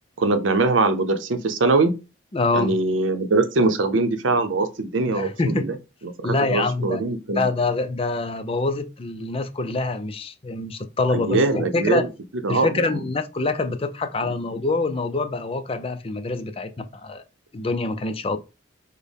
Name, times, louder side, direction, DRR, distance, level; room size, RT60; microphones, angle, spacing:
voice 1, 0.2-1.9 2.5-5.7 6.2-7.5 11.1-12.1 12.4-12.7, right 3 dB, 80° right, 0.7 m, -22 dB
voice 2, 2.3-2.7 5.1-5.7 6.2-7.0 7.3-12.1 12.5-17.2 17.5-18.4, left 3 dB, 30° left, 0.5 m, -25 dB
6.2 x 2.2 x 3.4 m
head